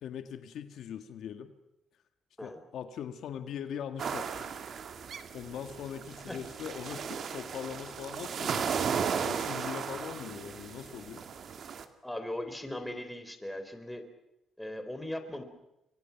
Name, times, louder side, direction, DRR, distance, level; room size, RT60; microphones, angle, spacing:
voice 1, 0.0-1.5 2.4-4.5 5.3-8.7 9.2-11.2, left 8 dB, 75° left, 8 dB, 1.8 m, -41 dB
sound 1, 4.0-11.9, right 6 dB, 55° right, 2.2 m, -35 dB
voice 2, 12.0-14.0 14.6-15.4, left 1 dB, 5° left, 7 dB, 4.1 m, -38 dB
30.0 x 23.5 x 5.9 m, 0.90 s
cardioid pair, 90°, 0 cm